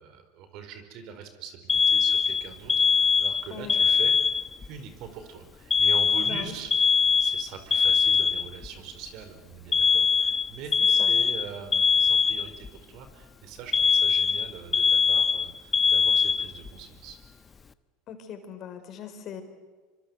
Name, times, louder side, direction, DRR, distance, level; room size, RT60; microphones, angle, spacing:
voice 1, 0.0-4.1 4.6-6.7 7.2-17.2, right 7 dB, 60° right, 9 dB, 4.8 m, -42 dB
Alarm, 1.7-4.7 5.7-8.7 9.7-12.7 13.7-16.7, left 6 dB, 20° left, 1.2 m, -22 dB
voice 2, 3.5-3.8 6.3-6.5 11.0-11.1 18.1-19.4, left 8 dB, 45° left, 7 dB, 4.8 m, -40 dB
26.0 x 24.5 x 8.1 m, 1.4 s
supercardioid pair, 105°, 0 cm